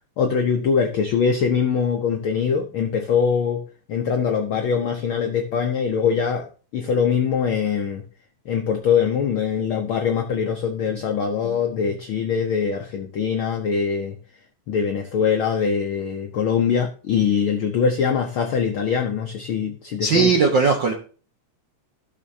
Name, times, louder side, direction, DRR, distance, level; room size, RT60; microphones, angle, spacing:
voice 1, 0.2-3.6 3.9-6.5 6.7-8.0 8.5-14.2 14.7-20.3, left 6 dB, 75° left, 4 dB, 1.2 m, -22 dB
voice 2, 20.0-20.9, right 4 dB, 65° right, 2 dB, 1.1 m, -18 dB
15.5 x 6.2 x 2.7 m, 0.37 s
omnidirectional pair, 3.4 m